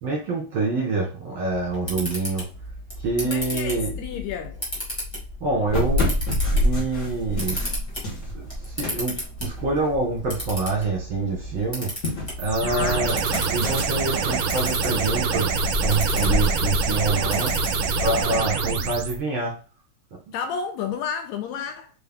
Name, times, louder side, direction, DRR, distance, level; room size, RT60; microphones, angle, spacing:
voice 1, 0.0-2.4 3.0-3.9 5.4-6.1 6.5-7.6 8.3-11.9 12.4-13.2 13.5-17.5 18.0-19.5, right 3 dB, 50° right, 1.7 m, -26 dB
Camera, 1.5-18.2, left 1 dB, 15° left, 0.8 m, -35 dB
voice 2, 3.2-4.6 12.6-13.1 20.3-21.9, left 7 dB, 80° left, 1.7 m, -31 dB
sound 1, 5.7-10.9 11.2-18.9, left 1 dB, 40° left, 1.2 m, -28 dB
sound 2, 12.4-19.2, right 5 dB, 70° right, 1.7 m, -25 dB
4.4 x 3.3 x 3.6 m
omnidirectional pair, 3.4 m